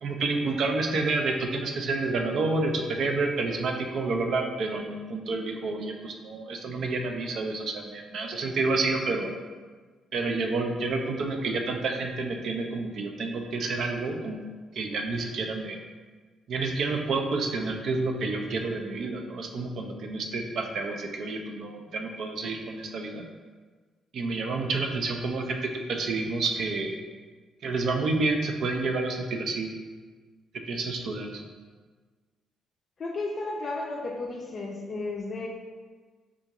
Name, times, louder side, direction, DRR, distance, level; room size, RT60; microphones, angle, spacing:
voice 1, 0.0-9.3 10.1-14.4 14.7-15.8 16.5-23.2 24.1-27.0 27.6-29.7 30.7-31.4, right 3 dB, 65° right, 3 dB, 0.4 m, -29 dB
voice 2, 33.0-35.5, left 2 dB, 45° left, -1 dB, 0.4 m, -33 dB
3.7 x 2.4 x 2.9 m, 1.4 s
cardioid pair, 90°, 0 cm